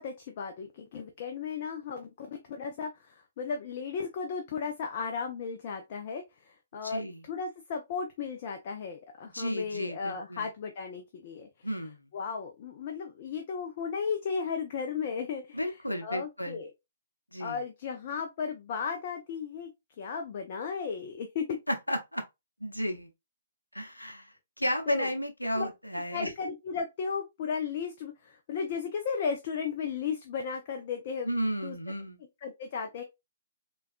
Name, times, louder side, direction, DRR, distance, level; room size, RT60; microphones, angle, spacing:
voice 1, 0.0-11.5 12.1-15.6 16.0-16.7 17.4-19.7 20.0-21.6 24.9-25.1 25.5-25.7 26.1-31.3 31.6-31.8 32.4-33.0, left 6 dB, 40° left, 0.4 m, -35 dB
voice 2, 6.8-7.2 9.3-10.5 11.6-12.1 15.5-16.6 17.3-17.6 21.7-22.2 22.6-23.1 23.7-26.3 31.2-32.2, equal, 90° left, 0.6 m, -33 dB
3.4 x 2.3 x 2.4 m
figure-of-eight pair, 125°, 0 cm